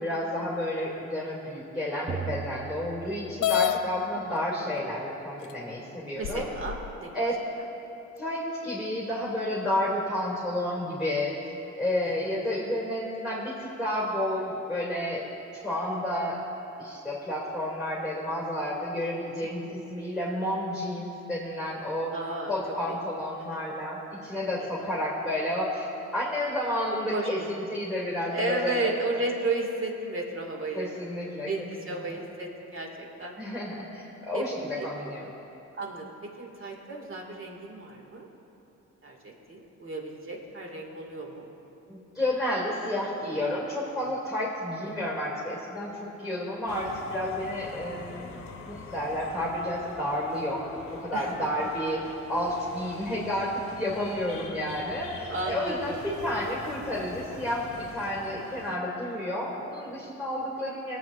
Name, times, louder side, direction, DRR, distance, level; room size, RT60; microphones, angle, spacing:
voice 1, 0.0-6.5 7.1-7.4 8.2-11.3 11.7-15.3 15.6-16.4 16.8-22.1 22.5-25.9 26.1-28.9 30.7-31.5 31.8-32.0 33.4-35.2 41.9-48.3 48.7-61.0, left 1 dB, ahead, -7 dB, 2.3 m, -31 dB
sound 1, 2.1-4.0, right 7 dB, 20° right, 0.4 m, -38 dB
sound 2, 3.4-3.8 4.8-4.9 5.5-5.6 6.2-6.9, left 11 dB, 80° left, 0.5 m, -27 dB
voice 2, 6.2-7.1 12.0-12.3 22.1-22.5 22.9-23.0 23.5-23.6 27.1-27.5 28.3-30.9 31.5-33.3 34.3-34.4 34.8-34.9 35.7-38.3 39.0-41.5 51.1-51.3 55.3-55.8, right 2 dB, 45° right, 0 dB, 1.9 m, -33 dB
sound 3, 46.7-58.8, left 4 dB, 45° left, 1.0 m, -44 dB
23.5 x 8.3 x 2.4 m, 2.9 s
cardioid pair, 90°, 30 cm